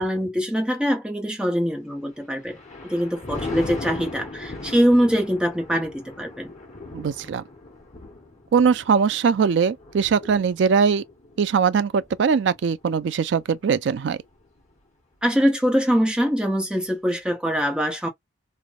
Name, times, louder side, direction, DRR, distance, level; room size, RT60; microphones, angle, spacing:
voice 1, 0.0-2.6 2.8-6.5 15.2-18.1, equal, 5° right, 0.8 m, -23 dB
Thunder, 2.1-13.6 14.1-14.4, left 2 dB, 40° left, 1.4 m, -38 dB
voice 2, 6.9-7.4 8.5-11.0 11.4-14.2, right 6 dB, 70° right, 0.3 m, -21 dB
3.2 x 2.2 x 2.3 m
head